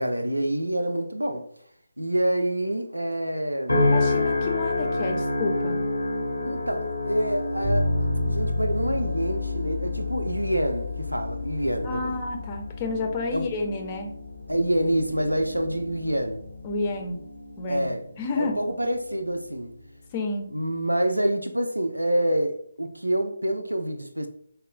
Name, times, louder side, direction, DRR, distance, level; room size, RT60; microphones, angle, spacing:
voice 1, 0.0-1.5 2.0-3.9 6.4-7.9 8.2-12.2 13.3-13.5 14.5-16.4 17.7-18.1 18.4-19.7 20.5-24.3, right 1 dB, 90° right, 0.4 m, -27 dB
sound 1, 3.7-18.2 18.7-19.1, left 2 dB, 80° left, 0.8 m, -30 dB
voice 2, 3.8-5.8 11.8-14.1 16.6-17.2 17.6-17.9 18.2-18.6 20.1-20.5, left 3 dB, 25° left, 0.5 m, -30 dB
sound 2, 7.6-17.5, left 3 dB, 45° right, 0.6 m, -32 dB
4.1 x 2.2 x 2.3 m
figure-of-eight pair, 150°, 0 cm